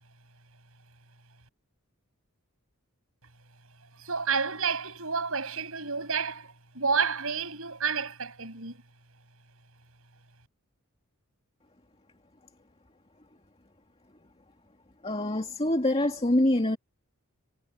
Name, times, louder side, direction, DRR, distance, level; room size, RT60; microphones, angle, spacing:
voice 1, 4.0-8.8, right 5 dB, 70° right, 7.8 m, -30 dB
voice 2, 15.0-16.8, left 1 dB, 25° left, 2.2 m, -25 dB
head